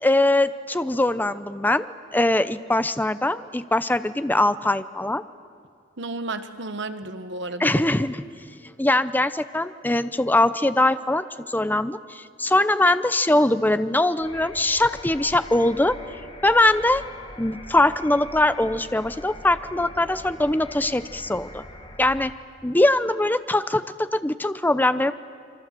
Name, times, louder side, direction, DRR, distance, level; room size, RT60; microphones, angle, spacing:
voice 1, 0.0-5.2 7.6-8.2 8.6-16.0 16.4-17.0 17.4-21.6 22.0-22.3 22.6-25.1, left 1 dB, 10° left, 13 dB, 0.6 m, -22 dB
voice 2, 6.0-7.8, right 2 dB, 65° right, 9 dB, 1.4 m, -32 dB
sound 1, 14.2-22.3, left 1 dB, 30° left, 1.9 m, -42 dB
27.0 x 24.0 x 7.7 m, 2.2 s
head